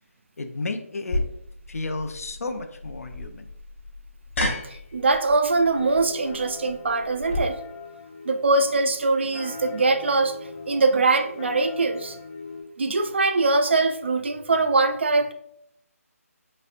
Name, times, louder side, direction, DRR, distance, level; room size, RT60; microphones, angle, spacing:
voice 1, 0.4-1.2 1.7-3.5, left 3 dB, 75° left, 8 dB, 0.5 m, -32 dB
sound 1, 1.1-7.4, left 1 dB, 50° left, 0.8 m, -32 dB
voice 2, 4.6-7.6 8.3-10.4 10.7-12.2 12.8-15.3, right 3 dB, 50° right, 8 dB, 0.3 m, -22 dB
sound 2, 5.7-12.6, left 4 dB, 15° left, 0.5 m, -40 dB
4.1 x 3.3 x 2.5 m, 0.73 s
hypercardioid pair, 170°, 8 cm